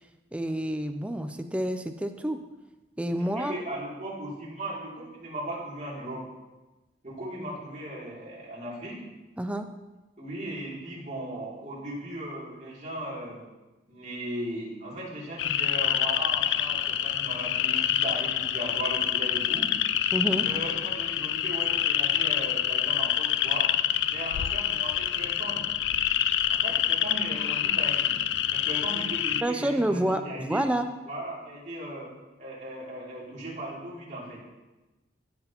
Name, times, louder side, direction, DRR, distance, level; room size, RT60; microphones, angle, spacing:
voice 1, 0.3-2.4 3.0-3.5 9.4-9.7 20.1-20.5 29.4-30.9, right 1 dB, 5° right, 7 dB, 0.4 m, -28 dB
voice 2, 3.2-6.2 7.0-9.0 10.2-13.4 13.9-19.7 20.2-23.7 24.1-25.6 26.5-28.1 28.5-30.6 31.1-32.1 32.4-34.4, right 1 dB, 40° right, -6 dB, 2.8 m, -37 dB
sound 1, 15.4-29.4, left 11 dB, 75° left, 0.3 m, -27 dB
14.5 x 6.0 x 3.0 m, 1.1 s
head